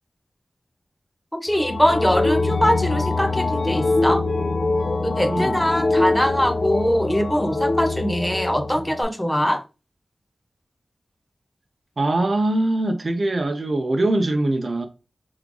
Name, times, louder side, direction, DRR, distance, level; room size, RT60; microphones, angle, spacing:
voice 1, 1.3-4.2 5.0-9.6, equal, 5° left, 0.7 m, -22 dB
sound 1, 1.5-9.0, left 2 dB, 75° left, 0.7 m, -23 dB
voice 2, 5.3-5.6 12.0-14.9, right 2 dB, 50° right, 0.6 m, -22 dB
3.5 x 3.2 x 3.8 m
wide cardioid pair, 90°, 0 cm